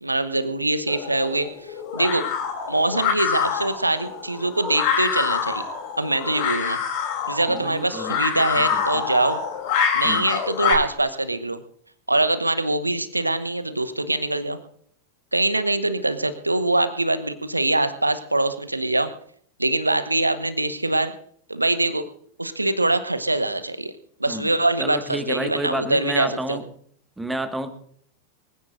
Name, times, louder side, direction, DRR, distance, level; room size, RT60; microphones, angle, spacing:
voice 1, 0.0-2.3 2.7-5.7 6.0-6.8 7.3-9.4 9.9-11.6 12.1-14.6 15.3-19.1 19.6-21.1 21.5-22.1 22.4-23.9 24.2-26.6, right 2 dB, 85° right, 11 dB, 1.0 m, -23 dB
sound 1, 0.9-10.7, left 7 dB, 45° left, 3.2 m, -26 dB
voice 2, 7.5-8.2 8.7-9.0 10.0-10.3 24.3-24.5 24.8-26.6 27.2-27.7, right 1 dB, 5° right, 7 dB, 1.7 m, -30 dB
23.5 x 16.0 x 2.6 m, 0.63 s
figure-of-eight pair, 90°, 0 cm